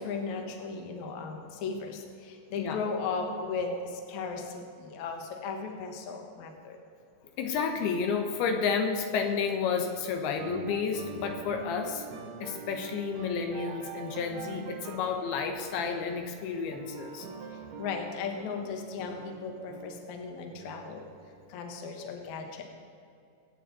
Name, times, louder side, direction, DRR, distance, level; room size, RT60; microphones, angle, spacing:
voice 1, 0.0-6.8 17.5-21.1 21.5-22.6, left 4 dB, 60° left, 3 dB, 2.3 m, -36 dB
voice 2, 2.6-3.1 7.4-12.1 12.4-17.3, left 6 dB, 90° left, 5 dB, 3.1 m, -31 dB
sound 1, 10.3-21.6, right 6 dB, 85° right, 3.4 m, -44 dB
23.0 x 8.7 x 4.2 m, 2.5 s
omnidirectional pair, 4.4 m